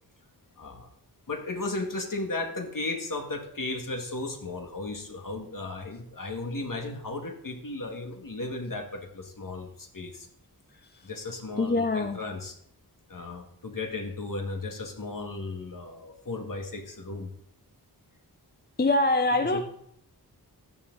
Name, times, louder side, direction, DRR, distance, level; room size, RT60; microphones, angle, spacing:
voice 1, 0.6-0.9 1.3-10.3 11.0-12.6 13.1-17.3 19.4-19.6, left 2 dB, 50° left, 3 dB, 2.2 m, -35 dB
voice 2, 11.6-12.2 18.8-19.6, left 2 dB, 25° left, 7 dB, 0.6 m, -24 dB
14.0 x 11.0 x 4.1 m, 0.71 s
wide cardioid pair, 100°, 40 cm